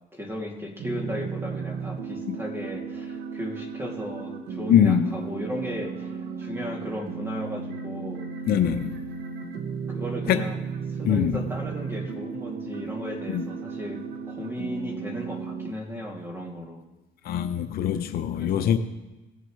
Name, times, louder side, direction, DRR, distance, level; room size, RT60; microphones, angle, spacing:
voice 1, 0.1-8.2 9.9-10.6 10.9-16.8 18.4-18.8, equal, 15° right, -1 dB, 2.6 m, -36 dB
sound 1, 0.8-15.7, right 5 dB, 80° right, 1.1 m, -35 dB
voice 2, 4.7-5.1 8.5-8.9 10.3-10.4 11.0-11.4 13.3-13.4 17.2-18.8, left 9 dB, 65° left, 8 dB, 0.7 m, -22 dB
19.0 x 7.4 x 3.2 m, 1.1 s
cardioid pair, 110°, 17 cm